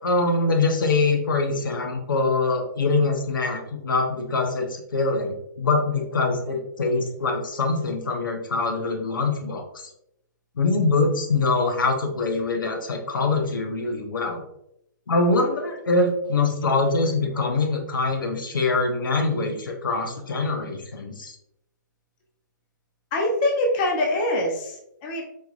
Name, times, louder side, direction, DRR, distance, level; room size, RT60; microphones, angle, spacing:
voice 1, 0.0-9.6 10.6-14.4 15.1-21.3, left 3 dB, 80° left, 3 dB, 1.0 m, -24 dB
voice 2, 23.1-25.2, left 1 dB, 30° left, 0 dB, 0.7 m, -24 dB
4.5 x 2.9 x 2.4 m, 0.77 s
hypercardioid pair, 150°, 11 cm